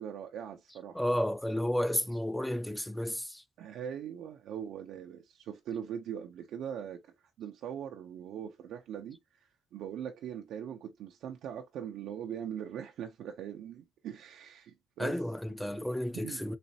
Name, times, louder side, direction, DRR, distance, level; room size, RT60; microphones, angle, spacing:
voice 1, 0.0-1.0 3.6-15.2 16.1-16.4, right 9 dB, 80° right, 0.5 m, -41 dB
voice 2, 0.9-3.4 15.0-16.6, left 1 dB, 5° left, 0.5 m, -32 dB
4.1 x 3.1 x 2.7 m
cardioid pair, 90°, 0 cm